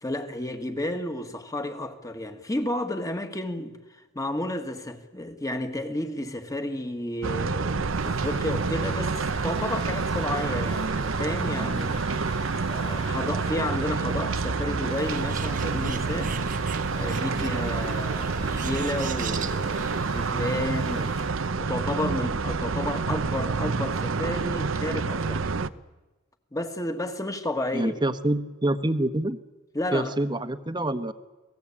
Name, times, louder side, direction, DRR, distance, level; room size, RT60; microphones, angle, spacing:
voice 1, 0.0-16.4 16.9-21.2 21.6-25.5 26.5-27.9 29.7-30.2, left 1 dB, 15° left, 1.9 m, -32 dB
sound 1, 7.2-25.7, right 4 dB, 85° right, 0.8 m, -28 dB
Domestic sounds home sounds, 7.4-21.7, left 5 dB, 35° left, 3.9 m, -47 dB
Bird, 15.0-20.0, right 5 dB, 40° right, 1.3 m, -38 dB
voice 2, 27.7-29.4 29.9-31.1, right 1 dB, 20° right, 1.2 m, -26 dB
28.5 x 19.0 x 8.6 m
head